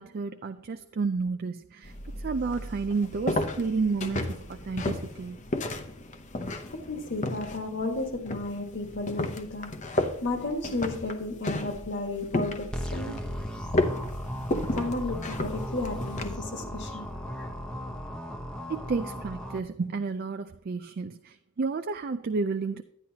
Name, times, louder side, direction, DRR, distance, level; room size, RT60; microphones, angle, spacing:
voice 1, 0.0-5.4 18.7-22.8, right 4 dB, 45° right, 0.4 m, -31 dB
sound 1, 1.8-16.4, left 1 dB, 35° left, 0.8 m, -33 dB
voice 2, 6.9-9.8 10.2-13.3 14.7-17.1, left 2 dB, 55° left, 1.6 m, -33 dB
sound 2, 12.7-19.6, equal, 5° left, 0.8 m, -36 dB
10.5 x 10.0 x 2.8 m
head